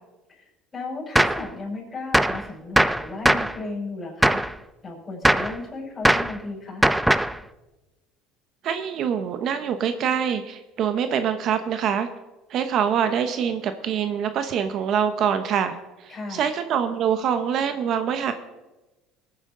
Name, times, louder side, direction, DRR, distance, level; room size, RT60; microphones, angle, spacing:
voice 1, 0.3-4.4 4.8-6.8 16.1-16.5, left 3 dB, 20° left, -4 dB, 5.5 m, -35 dB
Gunshot gunfire, 1.2-1.5 2.1-2.4 2.8-3.6 4.2-4.5 5.2-5.6 6.1-6.4 6.8-7.4, right 1 dB, 5° right, 0.4 m, -20 dB
voice 2, 8.6-12.1 12.5-15.7 16.0-18.3, right 8 dB, 50° right, 9 dB, 0.9 m, -24 dB
19.0 x 9.5 x 3.8 m, 1.1 s
supercardioid pair, 115°, 0 cm